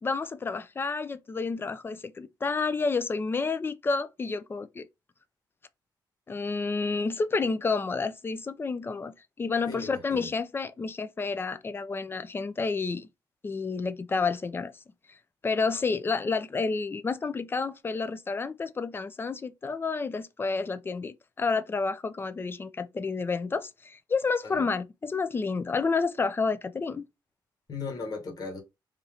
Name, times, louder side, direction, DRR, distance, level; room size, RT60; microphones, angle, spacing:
voice 1, 0.0-4.9 6.3-13.1 13.4-14.7 15.1-15.2 15.4-27.0, left 4 dB, 25° left, 0.4 m, -30 dB
voice 2, 9.7-10.3 24.4-24.7 27.7-28.6, left 4 dB, 50° left, 1.4 m, -37 dB
3.6 x 2.7 x 3.4 m
cardioid pair, 105°, 8 cm